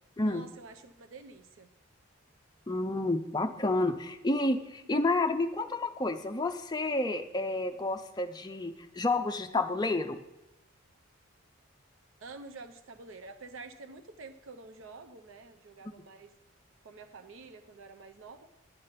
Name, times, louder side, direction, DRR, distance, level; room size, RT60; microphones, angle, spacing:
voice 1, 0.2-1.7 4.3-4.5 4.8-4.9 12.2-16.3 16.8-18.5, right 3 dB, 65° right, 8 dB, 0.6 m, -48 dB
voice 2, 2.7-10.2, left 2 dB, 20° left, 6 dB, 0.5 m, -30 dB
10.0 x 5.2 x 5.7 m, 0.96 s
head